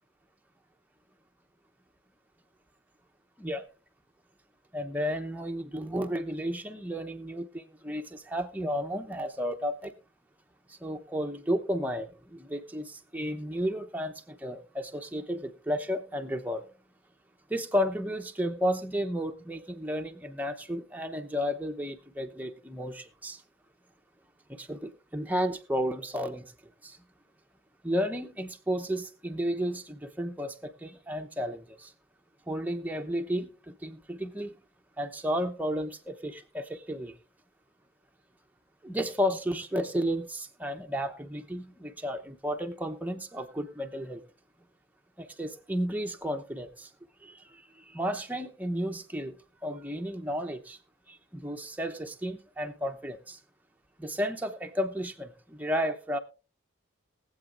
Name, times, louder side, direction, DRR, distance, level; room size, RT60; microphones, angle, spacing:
voice 1, 4.7-9.9 10.7-16.6 17.5-23.4 24.5-26.5 26.8-27.0 27.8-31.9 32.5-34.6 35.0-37.1 38.8-44.2 45.2-46.9 47.2-47.3 47.8-49.3 49.6-50.8 51.1-53.4 54.0-56.2, equal, 10° right, 0.8 m, -33 dB
21.5 x 8.0 x 2.5 m
head